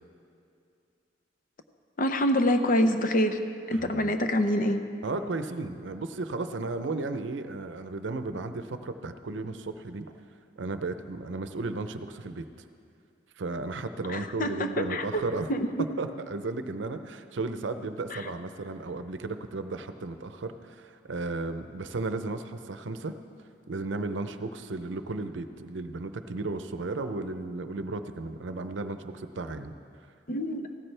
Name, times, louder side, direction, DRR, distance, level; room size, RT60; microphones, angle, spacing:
voice 1, 2.0-3.4 3.7-4.8 14.1-15.2 15.5-15.7 18.1-18.2 30.3-30.7, left 1 dB, 45° left, 7 dB, 0.6 m, -26 dB
voice 2, 3.7-4.1 5.0-10.1 10.6-12.5 13.4-15.5 16.0-23.1 23.7-29.7, right 3 dB, 85° right, 9 dB, 0.6 m, -34 dB
15.5 x 13.5 x 3.3 m, 2.5 s
head